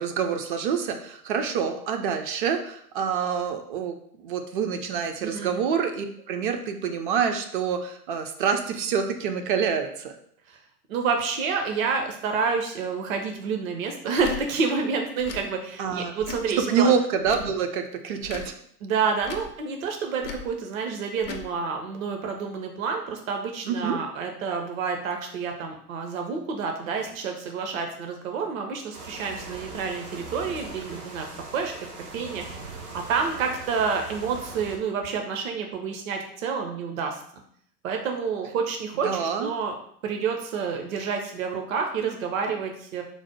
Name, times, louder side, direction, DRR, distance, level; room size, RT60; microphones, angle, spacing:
voice 1, 0.0-10.1 15.8-16.1 16.7-18.6 23.6-24.0 39.0-39.5, right 6 dB, 35° right, 6 dB, 0.4 m, -27 dB
voice 2, 5.2-5.6 10.5-10.6 10.9-16.9 18.8-31.3 31.5-31.7 32.1-32.6 32.9-37.2 37.8-39.7 40.0-43.0, right 5 dB, 60° right, 3 dB, 0.8 m, -29 dB
Tick / Tick-tock, 14.2-14.4 15.2-15.4 16.2-16.5 17.2-17.5 18.2-18.5 19.2-19.5 20.2-20.5 21.2-21.5, left 6 dB, 30° left, 0.4 m, -37 dB
sound 1, 28.9-34.8, right 3 dB, 75° right, 1.3 m, -40 dB
4.0 x 2.1 x 4.4 m, 0.65 s
figure-of-eight pair, 90°, 46 cm